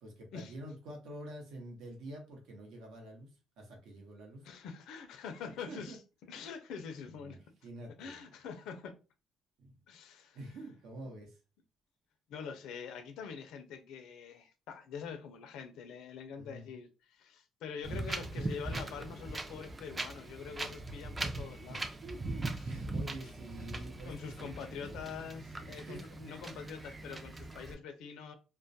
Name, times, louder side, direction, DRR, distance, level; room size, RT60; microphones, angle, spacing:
voice 1, 0.0-3.3 3.6-4.4 5.7-6.0 7.0-8.3 9.6-9.7 10.3-11.4 16.3-16.8 21.7-24.5 25.7-26.1, right 1 dB, 75° right, 0.9 m, -47 dB
voice 2, 4.4-7.4 8.0-9.0 9.9-10.4 12.3-21.8 23.1-23.2 24.0-28.3, left 6 dB, 80° left, 0.4 m, -45 dB
Wind, 17.8-27.7, right 2 dB, 20° right, 0.3 m, -40 dB
2.2 x 2.1 x 2.6 m
cardioid pair, 105°, 0 cm